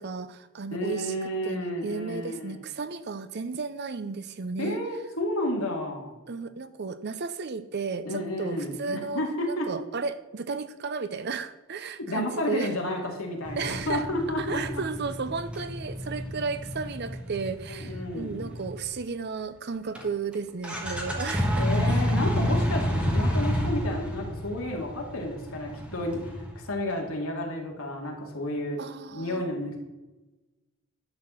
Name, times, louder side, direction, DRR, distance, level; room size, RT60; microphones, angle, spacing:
voice 1, 0.0-4.8 6.3-12.7 13.6-14.1 14.4-22.0 28.8-29.5, right 4 dB, 50° right, 12 dB, 0.6 m, -34 dB
voice 2, 0.7-2.5 4.6-6.1 8.0-9.7 12.1-14.8 17.7-18.5 21.6-28.8 29.1-29.8, left 1 dB, 75° left, 0 dB, 2.3 m, -31 dB
sound 1, 13.4-19.0 19.9-20.0 20.3-20.4 20.6-26.8, equal, 5° right, 1.4 m, -29 dB
11.5 x 4.3 x 7.6 m, 1.1 s
head